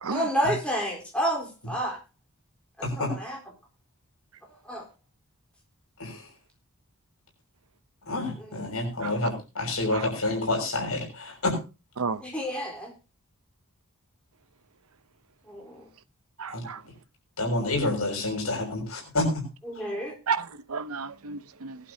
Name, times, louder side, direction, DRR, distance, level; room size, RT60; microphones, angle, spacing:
voice 1, 0.1-2.0 2.8-3.4 4.6-4.8 8.4-8.6 12.2-12.9 15.5-15.9 19.6-20.1, equal, 5° left, 4.0 m, -30 dB
voice 2, 8.1-11.6 16.5-16.6 17.4-19.3, left 2 dB, 90° left, 6.2 m, -28 dB
voice 3, 16.4-16.8 20.3-21.8, right 5 dB, 80° right, 0.8 m, -32 dB
20.0 x 11.5 x 2.8 m
head